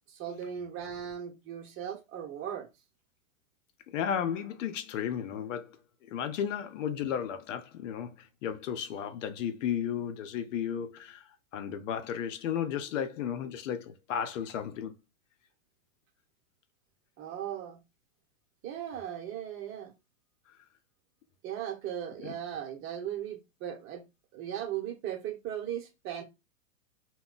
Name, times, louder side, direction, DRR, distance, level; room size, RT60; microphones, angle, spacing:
voice 1, 0.1-2.7 17.2-17.8 18.6-19.9 21.4-24.0 24.3-26.2, right 10 dB, 30° right, 0.9 m, -37 dB
voice 2, 3.9-5.8 6.1-14.9 22.2-22.3, left 8 dB, 65° left, 0.6 m, -34 dB
2.2 x 2.2 x 3.8 m
hypercardioid pair, 120°, 40 cm